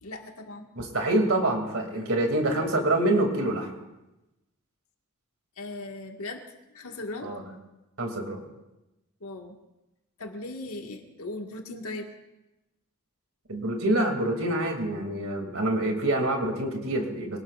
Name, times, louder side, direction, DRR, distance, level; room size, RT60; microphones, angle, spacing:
voice 1, 0.0-0.7 1.9-2.1 5.6-6.4 6.7-7.3 9.2-9.6 10.2-12.1, left 2 dB, 75° left, 2 dB, 1.9 m, -38 dB
voice 2, 0.8-3.7 7.2-7.4 8.0-8.4 13.5-17.4, right 1 dB, 65° right, 2 dB, 2.7 m, -26 dB
24.5 x 18.5 x 2.5 m, 0.97 s
head